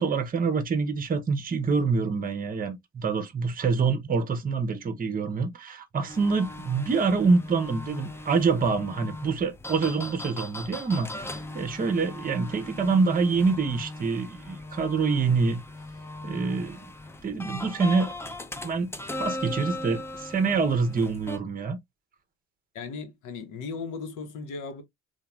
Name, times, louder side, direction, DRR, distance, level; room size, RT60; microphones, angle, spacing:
voice 1, 0.0-15.6 16.2-16.8 17.2-18.1 18.6-21.8, right 4 dB, 30° right, 0.6 m, -26 dB
sound 1, 6.1-21.4, left 2 dB, 10° left, 0.4 m, -39 dB
voice 2, 22.7-24.8, left 4 dB, 85° left, 0.9 m, -36 dB
3.0 x 2.3 x 2.3 m
cardioid pair, 90°, 30 cm